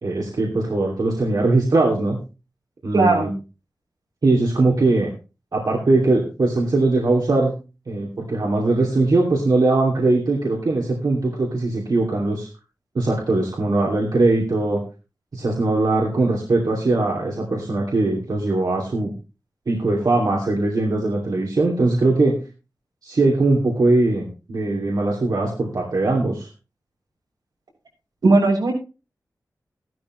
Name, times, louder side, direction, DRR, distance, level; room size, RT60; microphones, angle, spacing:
voice 1, 0.0-2.2 2.8-3.3 4.2-5.1 5.5-7.5 7.9-12.5 12.9-14.8 15.3-19.1 19.7-22.4 23.0-26.5, right 2 dB, 70° right, -2 dB, 2.7 m, -20 dB
voice 2, 2.9-3.3 28.2-28.7, right 3 dB, 90° right, -2 dB, 7.0 m, -16 dB
14.5 x 12.0 x 3.2 m, 0.32 s
wide cardioid pair, 90°, 7 cm